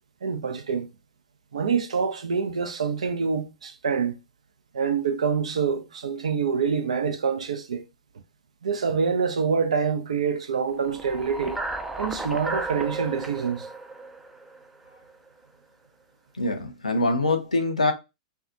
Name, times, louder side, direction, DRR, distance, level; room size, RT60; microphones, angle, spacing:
voice 1, 0.2-0.9 1.5-4.1 4.7-7.8 8.6-11.6 12.0-13.7, right 6 dB, 75° right, 0.5 m, -26 dB
sound 1, 10.8-15.1, right 2 dB, 5° right, 0.3 m, -34 dB
voice 2, 16.4-17.9, left 2 dB, 90° left, 0.6 m, -24 dB
2.6 x 2.3 x 2.5 m
figure-of-eight pair, 110°, 4 cm